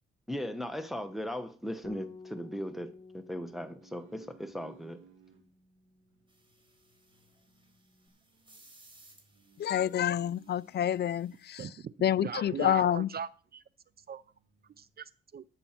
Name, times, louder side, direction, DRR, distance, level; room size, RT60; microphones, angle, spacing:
voice 1, 0.3-5.0, equal, ahead, 1.1 m, -38 dB
sound 1, 1.3-2.5 3.0-5.4 6.0-11.1 11.9-13.1 13.4-13.5 13.9-14.9, right 4 dB, 85° right, 2.6 m, -62 dB
Bass guitar, 1.8-6.5 6.8-8.1, left 3 dB, 30° left, 1.3 m, -53 dB
sound 2, 6.3-11.6, right 2 dB, 25° right, 4.1 m, -62 dB
voice 2, 9.6-11.6 12.0-13.1, left 11 dB, 55° left, 0.4 m, -28 dB
voice 3, 11.6-11.9 12.2-13.6 14.0-14.2 14.8-15.4, right 7 dB, 50° right, 0.5 m, -39 dB
13.0 x 7.1 x 4.5 m
cardioid pair, 65°, 21 cm